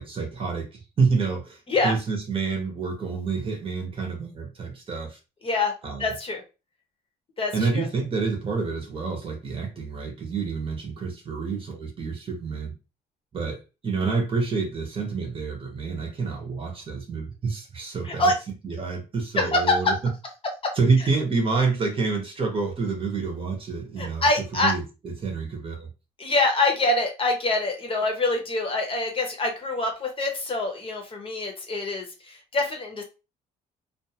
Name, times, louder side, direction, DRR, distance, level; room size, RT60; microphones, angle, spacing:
voice 1, 0.0-5.2 5.8-6.1 7.5-12.7 13.3-18.3 18.6-19.9 20.7-25.9, right 4 dB, 30° right, 2 dB, 0.9 m, -28 dB
voice 2, 6.0-6.4 7.4-7.9 18.0-18.3 19.4-19.9 20.6-20.7 24.0-24.7 26.2-33.0, left 2 dB, 30° left, 3 dB, 0.9 m, -25 dB
2.5 x 2.4 x 2.8 m, 0.30 s
cardioid pair, 110°, 17 cm